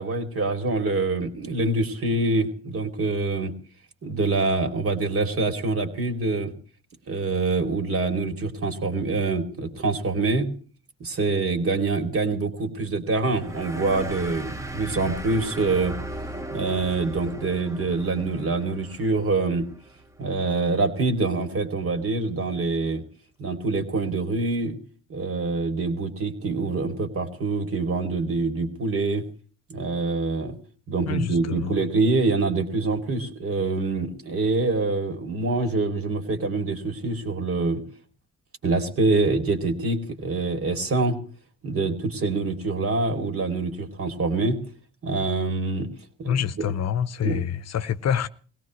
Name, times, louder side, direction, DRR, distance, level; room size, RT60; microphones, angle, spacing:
voice 1, 0.0-3.5 4.0-6.5 7.1-10.5 11.0-16.0 16.5-19.7 20.2-23.0 23.4-24.8 25.1-29.2 29.7-30.6 30.9-37.8 38.6-41.2 41.6-44.6 45.0-45.9 46.2-46.7 47.2-47.5, right 3 dB, 50° right, 2.9 m, -25 dB
sound 1, 13.4-20.4, right 1 dB, 10° right, 1.2 m, -37 dB
voice 2, 31.1-31.7 46.2-48.3, left 8 dB, 60° left, 0.8 m, -26 dB
21.5 x 17.0 x 3.1 m
cardioid pair, 90°, 30 cm